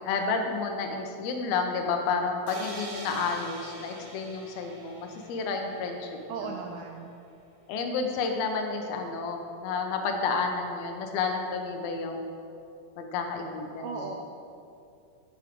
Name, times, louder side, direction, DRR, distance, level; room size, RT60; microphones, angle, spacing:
voice 1, 0.0-6.6 7.7-12.3 13.0-14.1, left 4 dB, 80° left, 3 dB, 2.8 m, -31 dB
sound 1, 2.5-6.3, right 2 dB, 70° right, 3.3 m, -45 dB
voice 2, 6.3-7.2 13.8-14.1, right 5 dB, 85° right, 2 dB, 1.8 m, -36 dB
10.5 x 9.0 x 3.6 m, 2.6 s
omnidirectional pair, 4.5 m